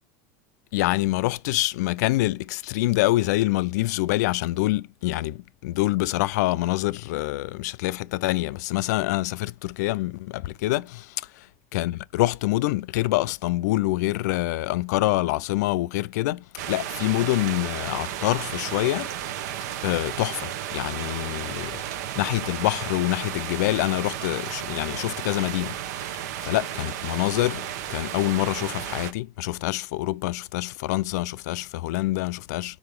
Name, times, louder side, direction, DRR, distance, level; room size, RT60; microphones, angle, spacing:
voice 1, 0.7-11.3 11.7-19.2 19.8-21.8 22.2-26.0 26.4-32.8, left 18 dB, 80° left, 0.4 m, -26 dB
sound 1, 16.6-29.1, right 11 dB, 75° right, 0.8 m, -33 dB
4.9 x 3.9 x 5.3 m
supercardioid pair, 170°, 9 cm